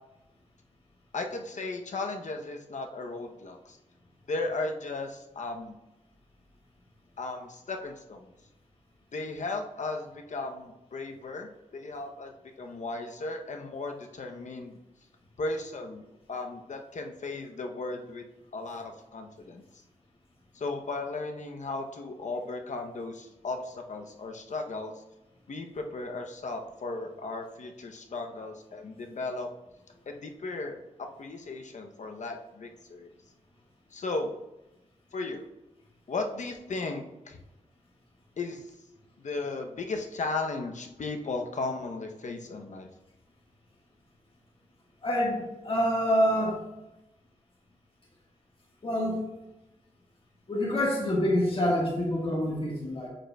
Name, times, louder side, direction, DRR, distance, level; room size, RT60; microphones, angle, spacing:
voice 1, 1.1-3.8 4.3-5.7 7.2-8.3 9.1-14.8 15.4-16.0 16.3-18.3 18.5-19.6 20.5-25.0 25.5-29.5 30.1-33.1 33.9-34.3 35.1-35.5 36.1-37.4 38.4-38.8 39.2-42.9, left 3 dB, 60° left, 4 dB, 0.7 m, -36 dB
voice 2, 45.0-46.6 48.8-49.2 50.5-53.1, equal, 40° left, -3 dB, 1.4 m, -26 dB
8.6 x 5.1 x 2.2 m, 0.96 s
wide cardioid pair, 125°, 14 cm